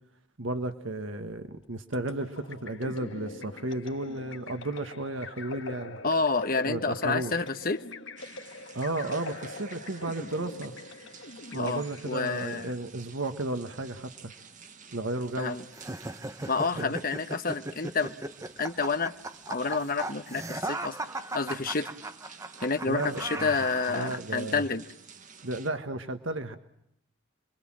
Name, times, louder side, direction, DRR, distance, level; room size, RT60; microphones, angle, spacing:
voice 1, 0.4-6.0 6.6-7.4 8.7-10.7 11.5-14.3 14.9-15.6 16.7-16.9 22.9-23.5 23.9-24.6 25.4-26.6, right 2 dB, 80° right, 8 dB, 1.6 m, -33 dB
sound 1, 1.9-12.4, left 2 dB, 70° left, 1.8 m, -43 dB
voice 2, 6.0-7.8 11.5-12.7 15.4-15.6 16.5-18.1 18.6-19.1 19.5-21.0 21.3-21.9 22.6-24.8, left 4 dB, 45° left, 9 dB, 1.2 m, -29 dB
sound 2, 8.2-25.7, right 6 dB, 40° right, 1.6 m, -51 dB
sound 3, 15.7-24.2, right 2 dB, 15° right, 1.0 m, -37 dB
28.0 x 22.5 x 7.6 m, 0.77 s
head